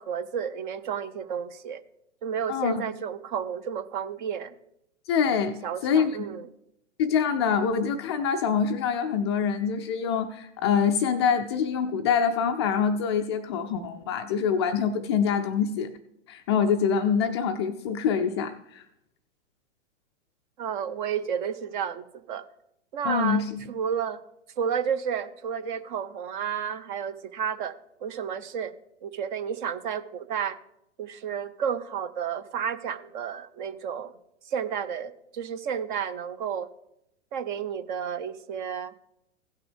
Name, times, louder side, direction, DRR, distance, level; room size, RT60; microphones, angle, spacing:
voice 1, 0.0-1.8 2.2-4.5 5.6-6.5 20.6-22.4 22.9-24.2 24.6-27.8 28.0-28.7 29.0-30.6 31.0-34.1 34.4-36.7 37.3-38.9, right 7 dB, 40° right, 13 dB, 0.7 m, -31 dB
voice 2, 2.5-2.8 5.1-5.6 5.8-6.2 7.0-15.9 16.3-18.8 23.0-23.6, left 6 dB, 25° left, 6 dB, 0.3 m, -25 dB
16.5 x 5.8 x 3.5 m, 0.80 s
figure-of-eight pair, 110°, 37 cm